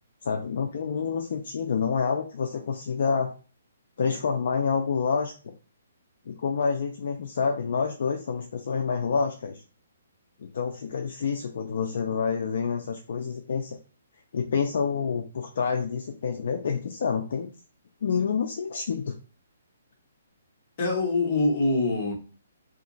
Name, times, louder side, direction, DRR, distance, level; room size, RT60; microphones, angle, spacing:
voice 1, 0.2-3.3 4.0-5.5 6.3-9.6 10.4-13.8 14.3-17.5 18.0-19.1, left 5 dB, 50° left, 3 dB, 0.5 m, -28 dB
voice 2, 20.8-22.1, left 2 dB, 30° left, 0 dB, 1.2 m, -24 dB
2.8 x 2.4 x 3.9 m, 0.36 s
hypercardioid pair, 175°, 0 cm